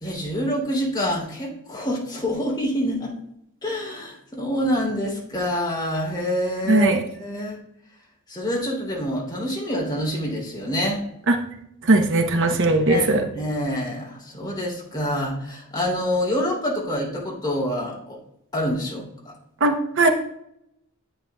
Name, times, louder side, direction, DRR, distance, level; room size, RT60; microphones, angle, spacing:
voice 1, 0.0-3.1 3.6-7.6 8.3-11.1 12.9-13.1 13.3-18.2 18.5-19.3, equal, 20° left, -4 dB, 2.8 m, -26 dB
voice 2, 6.7-7.0 11.3-11.4 11.8-13.2 19.6-20.1, right 2 dB, 60° right, 5 dB, 0.8 m, -18 dB
10.0 x 8.5 x 2.3 m, 0.77 s
head